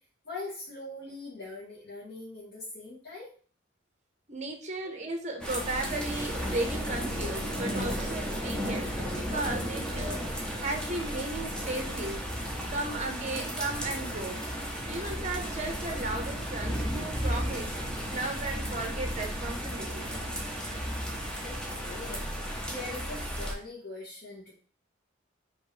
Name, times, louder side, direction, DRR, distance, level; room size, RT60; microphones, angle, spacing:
voice 1, 0.2-3.3 21.4-22.2 22.7-24.5, left 2 dB, 60° left, -7 dB, 1.4 m, -42 dB
voice 2, 4.3-12.3 12.7-14.4 14.9-17.8 18.1-20.1, right 2 dB, 40° right, 4 dB, 0.9 m, -35 dB
sound 1, 5.4-23.5, equal, 5° left, 0.8 m, -34 dB
5.0 x 3.0 x 3.3 m, 0.42 s
head